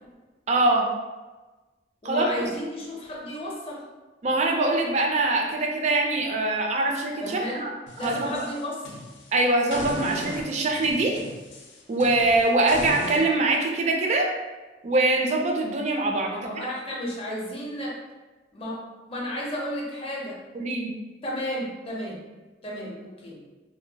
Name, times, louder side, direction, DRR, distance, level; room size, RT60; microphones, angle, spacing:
voice 1, 0.5-0.9 2.0-2.4 4.2-7.7 8.0-8.5 9.3-11.2 11.9-14.3 14.8-16.4 20.5-20.9, right 2 dB, 40° right, 1 dB, 0.4 m, -23 dB
voice 2, 2.0-3.9 7.2-9.0 16.3-18.0 18.5-20.4 21.2-22.2 22.6-23.4, equal, 30° left, -2 dB, 0.5 m, -33 dB
sound 1, 7.9-9.3 9.7-13.2, left 2 dB, 85° left, 0.5 m, -37 dB
2.7 x 2.1 x 2.7 m, 1.2 s
head